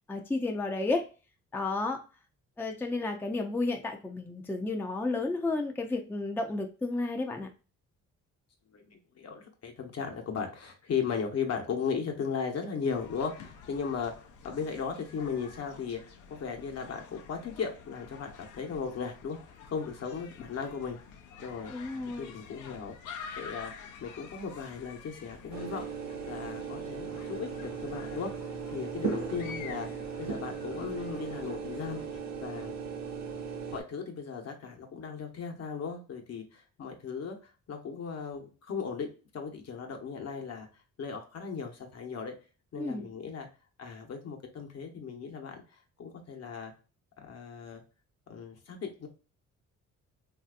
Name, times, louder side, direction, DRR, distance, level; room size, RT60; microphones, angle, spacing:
voice 1, 0.1-1.0 1.5-2.0 2.6-7.5 21.7-22.3 42.8-43.0, left 3 dB, 5° left, 3 dB, 0.5 m, -32 dB
voice 2, 8.7-19.4 19.6-21.0 21.4-21.7 22.2-22.9 23.4-23.7 24.0-25.9 26.3-28.3 28.7-29.9 30.2-32.0 32.4-32.8 33.7-40.7 41.0-42.3 42.7-43.5 43.8-46.7 47.2-47.8 48.3-49.1, left 6 dB, 55° left, 3 dB, 1.1 m, -37 dB
sound 1, 12.9-32.2, left 6 dB, 80° left, 0.7 m, -49 dB
sound 2, 25.5-33.8, right 6 dB, 65° right, 0.7 m, -37 dB
3.2 x 2.7 x 2.4 m, 0.34 s
cardioid pair, 90°, 30 cm